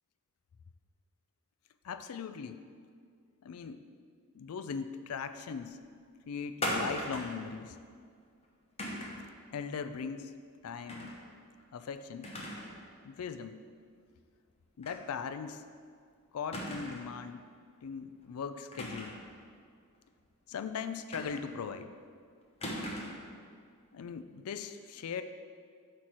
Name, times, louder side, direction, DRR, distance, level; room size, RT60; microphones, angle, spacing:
voice 1, 1.8-2.6 3.4-3.8 4.3-5.8 6.3-7.8 9.5-10.3 10.6-11.1 11.7-12.3 13.0-13.6 14.8-15.6 16.3-17.5 17.8-19.2 20.5-21.9 23.9-25.2, left 6 dB, 80° left, 10 dB, 0.4 m, -39 dB
sound 1, 6.6-7.4 8.8-9.3 10.9-11.2 11.6-11.7 12.2-12.8 13.1-13.2 14.8-15.0 15.4-15.5 16.5-17.1 18.7-19.3 21.1-21.7 22.6-23.3, left 1 dB, 30° left, 0.9 m, -38 dB
8.3 x 3.3 x 5.9 m, 2.1 s
head